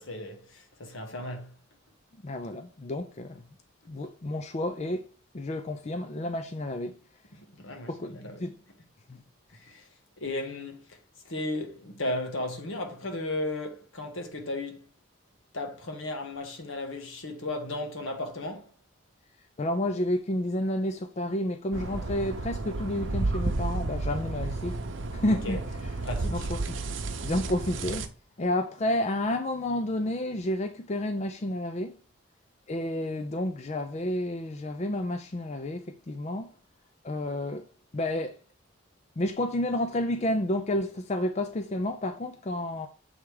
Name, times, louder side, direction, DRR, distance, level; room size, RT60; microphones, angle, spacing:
voice 1, 0.0-1.5 7.3-8.5 9.5-9.9 10.2-11.0 11.2-14.8 15.5-18.7 25.3-25.6 26.0-26.5, left 2 dB, 80° left, 1.5 m, -35 dB
voice 2, 2.2-3.4 3.9-5.1 5.3-6.9 7.9-8.5 9.1-9.2 19.6-24.8 25.1-25.6 26.3-26.6 27.2-28.1 28.4-32.0 32.7-36.5 37.0-37.7 37.9-38.4 39.2-42.9, left 1 dB, 35° left, 0.4 m, -30 dB
sound 1, 21.7-28.1, right 2 dB, 65° right, 0.8 m, -32 dB
7.2 x 3.4 x 4.8 m
head